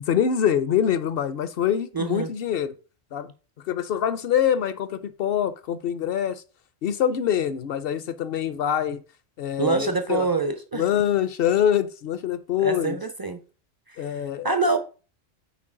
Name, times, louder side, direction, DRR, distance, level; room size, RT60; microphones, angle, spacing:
voice 1, 0.0-2.7 3.1-3.3 3.7-6.4 6.8-9.0 9.4-10.3 10.7-13.0 14.0-14.5, left 9 dB, 60° left, 0.6 m, -24 dB
voice 2, 1.9-2.3 9.6-11.0 12.6-13.4 13.9-14.8, right 3 dB, 35° right, 0.3 m, -26 dB
8.4 x 4.4 x 3.7 m
omnidirectional pair, 1.3 m